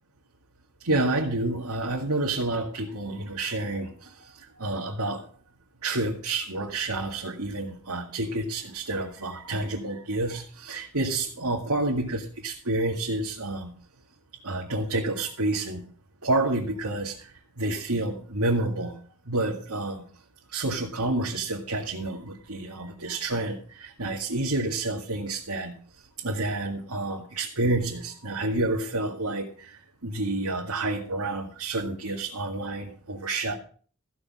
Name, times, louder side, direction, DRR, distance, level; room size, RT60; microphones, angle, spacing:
voice 1, 0.8-5.3 5.8-13.7 14.4-15.9 16.2-17.3 17.6-19.0 19.3-20.1 20.5-25.8 26.2-33.5, right 2 dB, 80° right, -2 dB, 2.2 m, -29 dB
15.0 x 6.4 x 7.6 m, 0.43 s
head